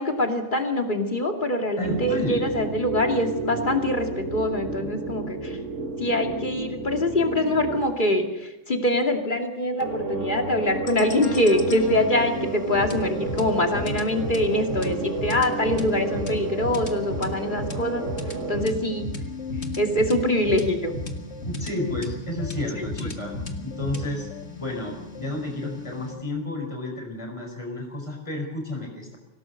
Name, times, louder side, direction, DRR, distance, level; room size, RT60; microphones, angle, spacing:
voice 1, 0.0-5.6 6.0-18.1 18.5-19.1 19.8-20.9 22.8-22.9, left 1 dB, 40° left, 3 dB, 2.8 m, -24 dB
voice 2, 1.8-2.5 21.4-23.4 23.6-24.3 24.6-29.2, left 1 dB, 25° left, 1 dB, 5.1 m, -31 dB
sound 1, 1.8-7.8 9.8-18.7, right 3 dB, 85° right, 2.3 m, -32 dB
sound 2, 10.9-26.2, left 2 dB, 65° left, 2.3 m, -34 dB
25.5 x 18.0 x 6.7 m, 0.99 s
omnidirectional pair, 1.2 m